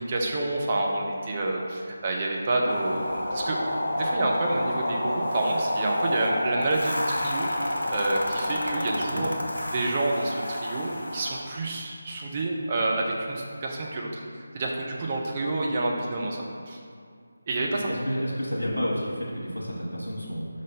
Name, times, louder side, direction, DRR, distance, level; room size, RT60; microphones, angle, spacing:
voice 1, 0.0-3.6 3.8-9.3 9.7-14.2 14.5-16.8 17.5-17.9, right 2 dB, 25° right, -1 dB, 0.7 m, -28 dB
sound 1, 2.7-11.4, left 1 dB, 55° left, 1.0 m, -29 dB
voice 2, 17.7-20.5, equal, 80° left, -5 dB, 1.1 m, -30 dB
5.3 x 3.3 x 5.4 m, 2.2 s
figure-of-eight pair, 155°, 0 cm